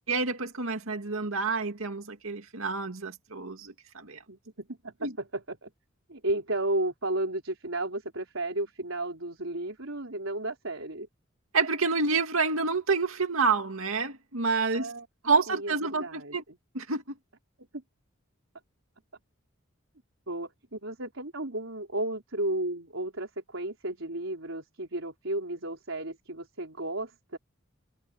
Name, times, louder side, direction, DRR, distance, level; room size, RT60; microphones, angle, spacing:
voice 1, 0.1-4.2 5.0-5.1 11.5-14.9 15.2-16.4 16.7-17.0, right 4 dB, 90° right, 2.3 m, -28 dB
voice 2, 4.3-5.7 6.1-11.1 14.7-15.1 15.5-16.6 17.7-17.8 20.3-27.4, right 1 dB, 75° right, 4.5 m, -33 dB
head